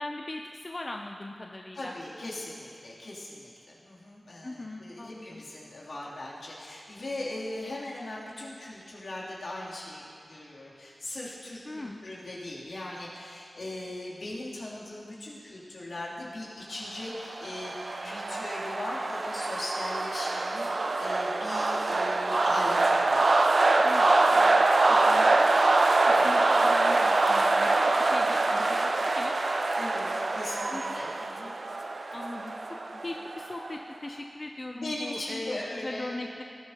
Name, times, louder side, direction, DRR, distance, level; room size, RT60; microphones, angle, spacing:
voice 1, 0.0-1.9 4.4-5.4 11.7-12.0 23.8-25.3 26.1-29.4 30.7-30.8 32.1-32.5 33.0-36.4, left 2 dB, 30° left, 2 dB, 0.5 m, -39 dB
voice 2, 1.7-10.0 10.3-23.2 25.3-25.6 26.1-26.4 29.7-31.6 32.9-33.0 34.7-36.1, left 1 dB, 70° left, -7 dB, 3.1 m, -39 dB
sound 1, 17.1-33.8, right 2 dB, 55° right, 0.6 m, -25 dB
19.0 x 11.5 x 3.0 m, 2.4 s
wide cardioid pair, 105°, 0 cm